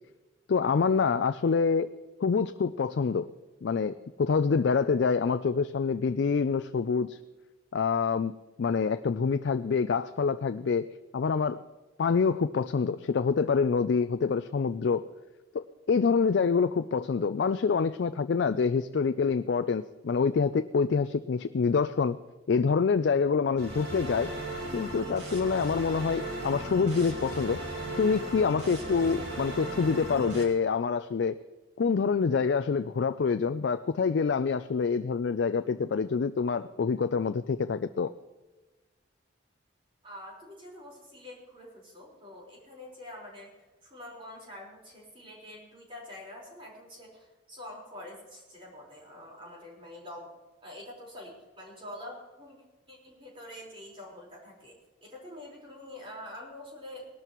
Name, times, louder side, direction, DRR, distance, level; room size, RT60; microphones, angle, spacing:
voice 1, 0.5-1.9 2.2-3.3 3.6-7.2 7.7-8.3 8.6-10.9 11.1-11.6 12.0-15.1 15.5-22.2 22.5-24.3 24.7-27.6 28.0-31.4 31.8-38.1, left 5 dB, 60° left, 11 dB, 0.4 m, -26 dB
sound 1, 23.6-30.4, right 1 dB, 55° right, 2.5 m, -37 dB
voice 2, 40.0-50.3 50.6-52.6 52.9-57.1, left 1 dB, 25° right, -3 dB, 4.4 m, -46 dB
19.0 x 12.5 x 3.0 m, 1.2 s
head